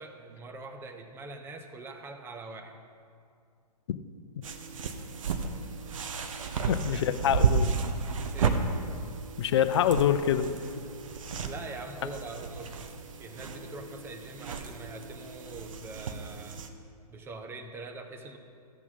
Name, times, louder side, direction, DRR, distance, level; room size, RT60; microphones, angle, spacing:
voice 1, 0.0-2.8 6.5-7.1 8.3-8.6 11.4-12.8 13.2-16.6 17.1-18.4, right 3 dB, 10° right, 5 dB, 0.8 m, -43 dB
sound 1, 4.4-16.7, right 5 dB, 55° right, 1.0 m, -33 dB
voice 2, 6.7-7.7 9.4-10.6, left 9 dB, 40° left, 11 dB, 0.6 m, -25 dB
13.5 x 8.4 x 5.4 m, 2.3 s
figure-of-eight pair, 125°, 21 cm